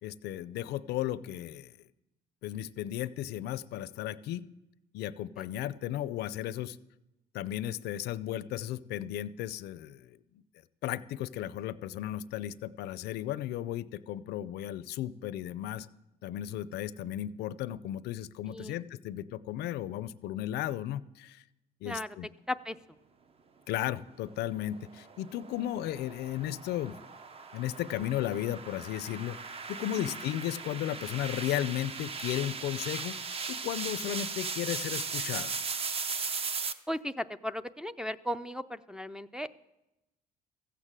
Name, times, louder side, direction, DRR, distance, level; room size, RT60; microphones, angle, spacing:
voice 1, 0.0-1.7 2.4-4.5 4.9-6.8 7.3-10.2 10.8-15.9 16.2-21.4 21.8-22.3 23.7-27.0 27.5-29.4 29.7-33.2 33.5-35.6, left 12 dB, 75° left, 17 dB, 0.5 m, -35 dB
voice 2, 18.5-18.8 21.8-22.2 22.5-22.8 30.0-30.1 36.9-39.6, left 1 dB, 5° right, 6 dB, 0.4 m, -36 dB
sound 1, 24.7-36.7, right 4 dB, 35° right, 0.7 m, -38 dB
14.5 x 8.3 x 7.4 m, 0.95 s
cardioid pair, 110°, 17 cm